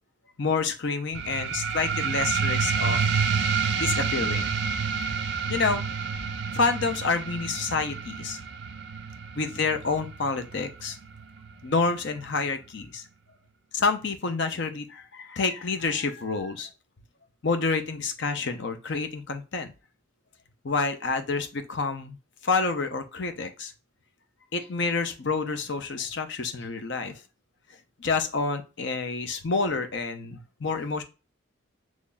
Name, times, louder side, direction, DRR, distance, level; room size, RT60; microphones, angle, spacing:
voice 1, 0.4-3.1 3.8-4.5 5.5-5.9 6.5-8.4 9.3-11.0 11.6-13.0 13.7-16.7 17.4-19.7 20.6-22.2 22.4-23.7 24.5-27.2 28.0-31.0, left 4 dB, 55° left, 7 dB, 0.6 m, -28 dB
sound 1, 1.1-12.2, right 5 dB, 55° right, 0.4 m, -29 dB
3.9 x 3.1 x 2.2 m, 0.30 s
head